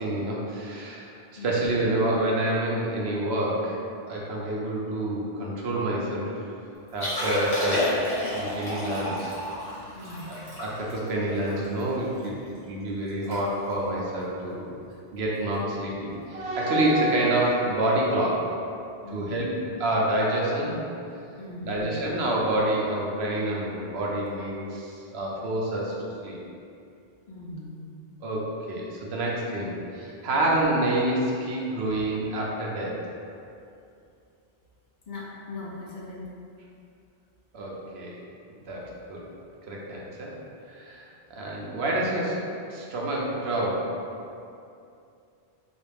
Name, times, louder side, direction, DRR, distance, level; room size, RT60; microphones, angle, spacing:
voice 1, 0.0-3.8 4.1-6.3 6.9-7.8 8.3-9.3 10.3-14.7 15.1-18.6 19.1-19.5 19.8-20.8 21.6-25.9 26.2-26.4 28.2-33.0 37.5-38.2 38.7-39.2 39.7-40.4 40.7-43.9, right 1 dB, 80° right, -4 dB, 0.9 m, -28 dB
Liquid, 6.9-12.3 12.7-12.8 13.1-13.4 13.6-13.9 14.5-14.7 16.2-16.3, left 1 dB, 25° left, 1.0 m, -30 dB
voice 2, 9.9-10.3 19.0-19.5 21.4-22.0 27.3-27.7 30.3-30.5 35.1-36.2, left 2 dB, 55° left, -5 dB, 0.7 m, -39 dB
4.0 x 2.4 x 3.4 m, 2.6 s
omnidirectional pair, 1.1 m